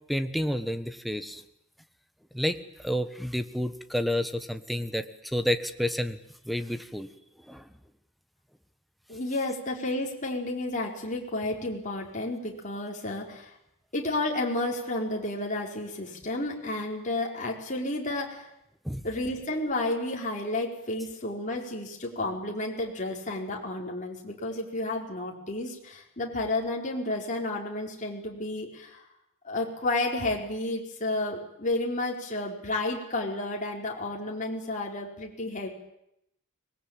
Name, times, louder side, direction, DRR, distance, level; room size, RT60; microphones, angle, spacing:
voice 1, 0.1-1.4 2.3-6.2 6.4-7.1 7.5-7.7 18.8-19.0, equal, ahead, 8 dB, 1.3 m, -30 dB
voice 2, 9.1-13.5 13.9-18.5 19.0-29.0 29.4-35.7, left 2 dB, 40° left, -1 dB, 4.7 m, -31 dB
24.5 x 20.0 x 8.8 m, 0.79 s
head